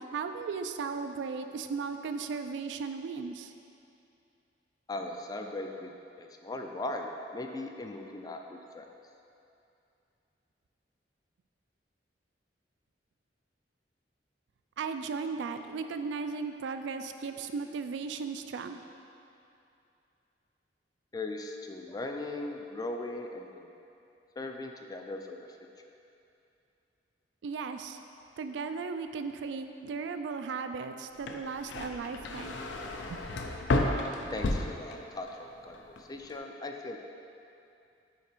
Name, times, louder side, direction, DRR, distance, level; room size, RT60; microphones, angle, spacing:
voice 1, 0.0-3.5 14.8-18.8 27.4-28.0 28.4-32.5 33.1-33.2, right 5 dB, 75° right, 7 dB, 0.3 m, -36 dB
voice 2, 4.9-5.9 6.2-8.9 21.1-23.7 24.4-25.5 34.3-37.0, left 2 dB, 20° left, 3 dB, 0.3 m, -39 dB
sound 1, 31.1-35.4 35.7-36.3, left 2 dB, 80° left, 0.5 m, -32 dB
5.7 x 4.1 x 4.5 m, 2.7 s
head